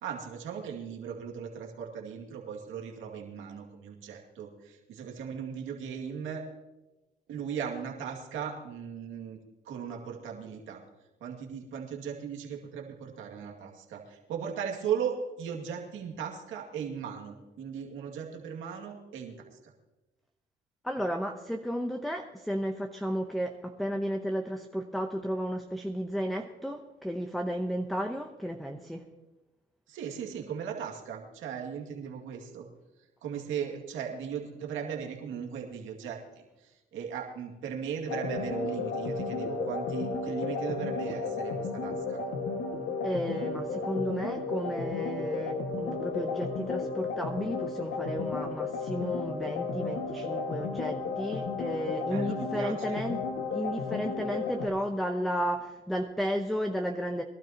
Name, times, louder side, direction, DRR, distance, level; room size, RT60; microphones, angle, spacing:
voice 1, 0.0-6.4 7.3-9.4 9.6-10.8 11.2-19.7 29.9-32.7 33.2-42.2 52.0-53.0, right 7 dB, 90° right, 0 dB, 2.3 m, -37 dB
voice 2, 20.8-29.1 43.0-53.2 53.5-57.2, equal, ahead, 4 dB, 0.9 m, -33 dB
sound 1, 38.1-54.7, left 4 dB, 80° left, 1.9 m, -33 dB
22.5 x 12.5 x 2.9 m, 1.1 s
cardioid pair, 90°, 20 cm